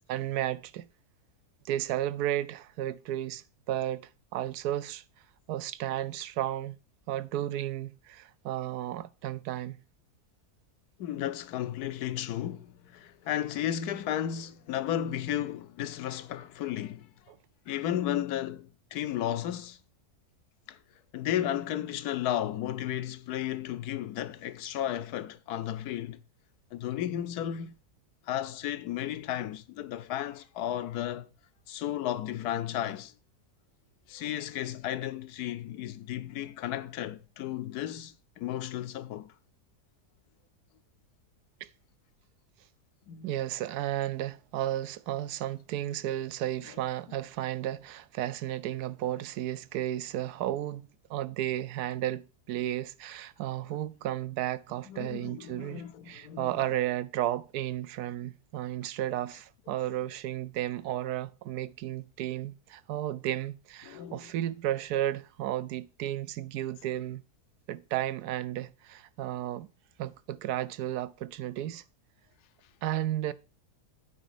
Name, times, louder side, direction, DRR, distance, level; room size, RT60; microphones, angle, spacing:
voice 1, 0.1-0.9 1.6-5.0 5.5-6.7 7.1-9.8 17.3-17.4 41.6-41.7 43.2-67.2 67.7-69.7 70.0-71.8 72.8-73.3, right 13 dB, 80° right, 1.2 m, -33 dB
voice 2, 11.0-17.1 17.7-19.8 20.7-20.8 21.1-26.2 26.7-27.8 28.3-31.3 31.7-33.1 34.1-39.3 43.1-43.3 54.9-56.5 63.9-64.3, left 11 dB, 80° left, 1.2 m, -34 dB
9.1 x 5.1 x 6.7 m
omnidirectional pair, 1.7 m